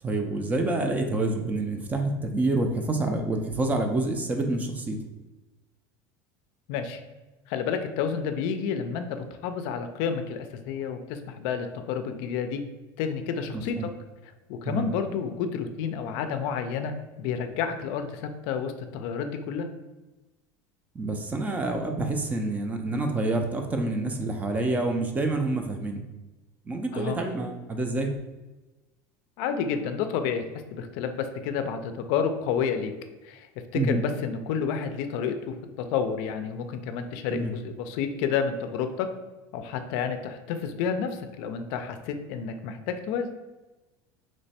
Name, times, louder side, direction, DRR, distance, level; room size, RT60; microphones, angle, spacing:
voice 1, 0.0-5.0 13.5-13.9 14.6-14.9 20.9-26.0 26.7-28.1 33.7-34.0 37.3-37.5, right 2 dB, 20° right, 5 dB, 0.4 m, -27 dB
voice 2, 6.7-7.0 7.5-12.6 13.0-13.9 14.5-16.9 17.2-19.7 26.9-27.2 29.4-30.4 30.7-32.9 33.2-33.5 33.9-35.5 35.9-39.1 39.5-43.3, left 7 dB, 70° left, 8 dB, 0.4 m, -30 dB
3.1 x 2.1 x 4.1 m, 1.1 s
supercardioid pair, 135°, 9 cm